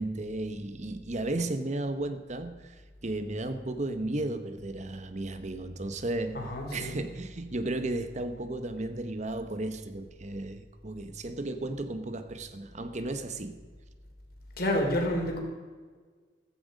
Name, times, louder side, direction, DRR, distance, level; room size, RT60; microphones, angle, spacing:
voice 1, 0.0-13.6, right 2 dB, 40° right, 0.9 m, -34 dB
voice 2, 6.3-7.0 14.6-15.4, left 1 dB, 55° left, 3.6 m, -29 dB
14.5 x 14.5 x 5.2 m
head